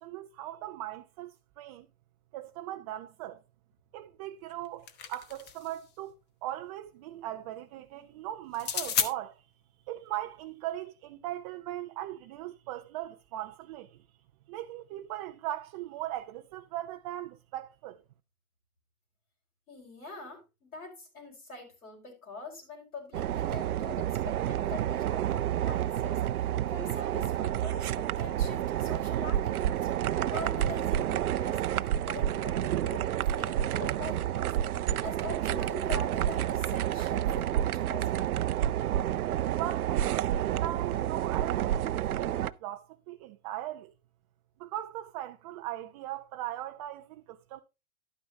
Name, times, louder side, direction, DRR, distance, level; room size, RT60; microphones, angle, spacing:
voice 1, 0.0-1.9 2.3-3.4 3.9-6.1 6.4-9.4 9.9-14.0 14.5-18.0 39.5-43.9 44.6-47.6, right 14 dB, 25° right, 0.4 m, -39 dB
sound 1, 4.5-5.8 8.5-9.1, left 7 dB, 25° left, 0.9 m, -32 dB
voice 2, 19.7-26.2 26.7-29.9 30.3-34.5 35.0-38.3, left 3 dB, 75° left, 5.1 m, -44 dB
sound 2, 23.1-42.5, right 11 dB, 75° right, 0.6 m, -29 dB
11.5 x 9.2 x 2.7 m
figure-of-eight pair, 105°, 44 cm